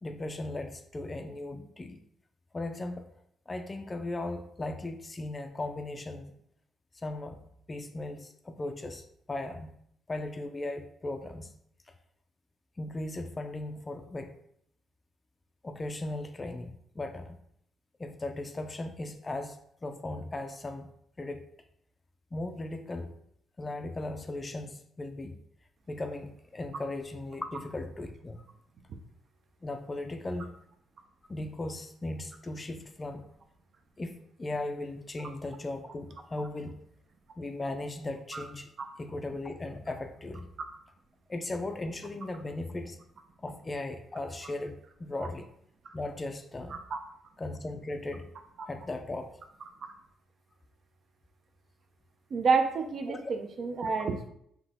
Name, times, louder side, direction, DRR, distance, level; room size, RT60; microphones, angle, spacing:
voice 1, 0.0-2.0 2.5-3.0 3.5-6.3 6.9-7.4 7.7-9.7 10.1-11.5 12.8-14.3 15.6-17.4 18.0-20.9 21.2-21.5 22.3-23.1 23.6-25.4 25.9-28.4 29.6-30.5 31.3-33.3 34.0-34.1 34.4-36.8 37.4-38.7 39.0-40.5 41.3-43.0 43.4-45.5 45.9-46.8 47.4-48.3 48.7-49.4 53.1-53.3, left 2 dB, 25° left, 6 dB, 0.4 m, -37 dB
voice 2, 52.3-54.3, right 5 dB, 55° right, 5 dB, 0.6 m, -28 dB
3.8 x 2.8 x 3.6 m, 0.71 s
cardioid pair, 90°, 0 cm